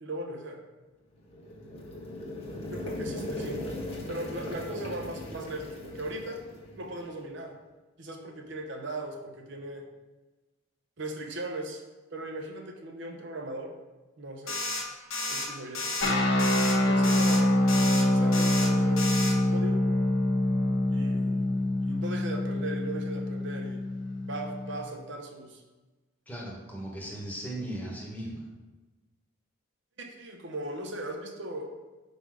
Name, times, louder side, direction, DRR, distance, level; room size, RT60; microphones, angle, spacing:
voice 1, 0.0-0.6 2.7-3.7 4.1-6.4 6.8-7.6 8.0-9.8 11.0-11.8 12.1-13.7 14.2-14.6 15.3-15.9 16.8-17.5 18.1-19.8 20.9-23.8 24.2-25.6 30.0-31.7, right 1 dB, 60° right, 2 dB, 0.8 m, -38 dB
sound 1, 1.2-7.2, left 1 dB, 30° left, 1.1 m, -38 dB
sound 2, 14.5-14.8 15.1-15.5 15.7-16.1 16.4-16.7 17.0-17.4 17.7-18.0 18.3-18.7 19.0-19.3, left 2 dB, 90° left, 1.2 m, -32 dB
sound 3, 16.0-24.9, left 1 dB, 60° left, 0.8 m, -25 dB
voice 2, 26.3-28.5, right 1 dB, 10° left, -4 dB, 1.1 m, -37 dB
5.2 x 4.0 x 4.8 m, 1.2 s
head